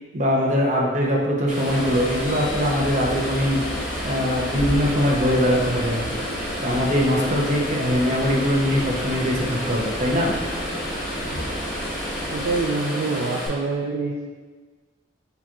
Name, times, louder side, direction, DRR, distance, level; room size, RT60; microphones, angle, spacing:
voice 1, 0.1-3.6 4.0-6.2 6.6-10.4, equal, 35° right, -2 dB, 0.7 m, -22 dB
sound 1, 1.5-13.5, equal, ahead, 1.2 m, -31 dB
sound 2, 1.7-12.6, equal, 55° left, 0.6 m, -33 dB
voice 2, 12.3-14.2, right 3 dB, 65° right, -1 dB, 0.3 m, -25 dB
6.8 x 2.9 x 2.4 m, 1.4 s
head